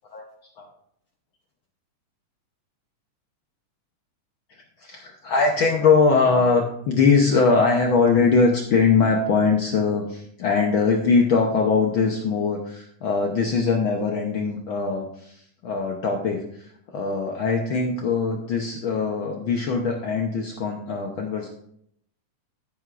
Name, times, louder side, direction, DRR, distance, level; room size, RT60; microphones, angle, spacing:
voice 1, 4.8-21.5, left 4 dB, 85° left, 1 dB, 1.1 m, -21 dB
13.0 x 10.5 x 2.5 m, 0.71 s
omnidirectional pair, 3.5 m